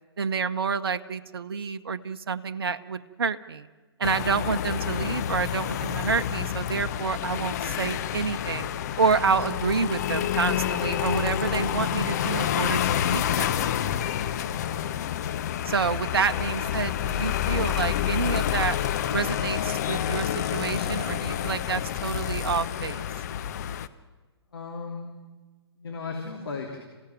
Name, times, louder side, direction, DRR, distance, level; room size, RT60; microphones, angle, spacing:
voice 1, 0.2-3.7 4.0-8.7 9.0-12.8 13.1-13.8 15.6-18.8 19.1-23.1, right 5 dB, 60° right, 9 dB, 0.9 m, -28 dB
sound 1, 4.0-23.9, left 10 dB, 40° left, 0.8 m, -28 dB
voice 2, 24.5-25.1 25.7-26.8, left 4 dB, 60° left, 0 dB, 3.0 m, -36 dB
27.5 x 16.0 x 9.2 m, 1.3 s
figure-of-eight pair, 120°, 14 cm